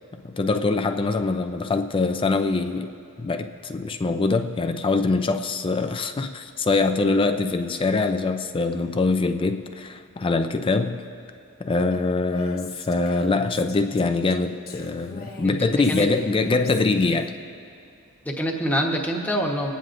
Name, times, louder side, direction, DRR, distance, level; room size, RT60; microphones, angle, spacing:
voice 1, 0.2-2.9 3.2-11.0 11.6-17.3, left 3 dB, 25° left, 7 dB, 0.4 m, -23 dB
Female speech woman speaking, 11.9-17.3, left 3 dB, 45° left, 1.0 m, -43 dB
voice 2, 15.4-16.1 18.2-19.7, equal, 5° left, -1 dB, 1.1 m, -26 dB
26.5 x 9.2 x 2.6 m, 2.5 s
head